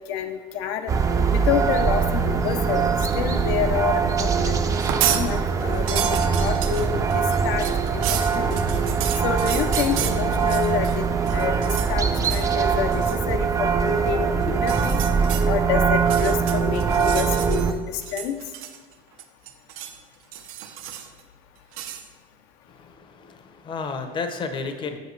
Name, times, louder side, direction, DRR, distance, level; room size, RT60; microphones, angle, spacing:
voice 1, 0.1-0.9 1.3-2.9 3.1-4.6 5.1-8.6 9.2-11.1 11.3-11.6 11.9-15.0 15.5-18.3, left 8 dB, 70° left, 7 dB, 0.5 m, -28 dB
sound 1, 0.9-17.7, right 5 dB, 20° right, 0.3 m, -22 dB
sound 2, 4.7-5.3 5.6-11.0 11.3-11.9 12.2-12.5 12.9-13.2 14.6-15.4 16.0-17.7 18.0-18.9 19.2-20.0 20.3-21.2 21.7-22.0, right 11 dB, 90° right, 0.5 m, -31 dB
voice 2, 22.7-25.0, left 4 dB, 25° left, 7 dB, 0.6 m, -32 dB
8.0 x 5.0 x 3.0 m, 1.4 s
cardioid pair, 135°, 18 cm